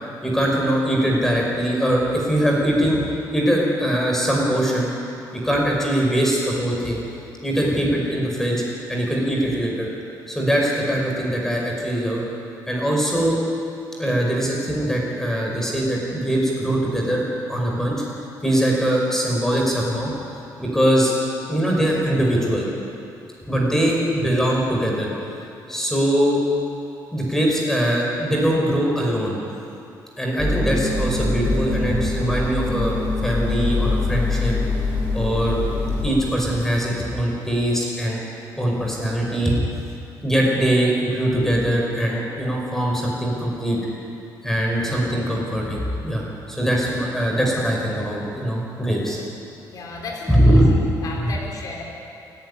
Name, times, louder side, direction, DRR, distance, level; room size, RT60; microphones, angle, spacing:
voice 1, 0.2-3.0 3.3-4.9 5.3-7.0 7.4-8.6 8.9-9.9 10.3-12.2 12.7-13.4 14.0-18.0 18.4-20.1 20.6-21.1 21.5-22.7 23.5-25.1 25.7-26.4 27.1-29.4 30.2-34.6 35.1-35.6 36.0-38.2 38.6-39.6 40.2-43.8 44.4-49.2 50.3-50.7, right 1 dB, 5° left, -2 dB, 5.3 m, -21 dB
sound 1, 30.4-36.1, left 2 dB, 25° left, 6.7 m, -23 dB
voice 2, 49.7-51.8, left 3 dB, 55° left, -1 dB, 3.7 m, -34 dB
29.5 x 11.5 x 9.8 m, 2.7 s
cardioid pair, 150°, 7 cm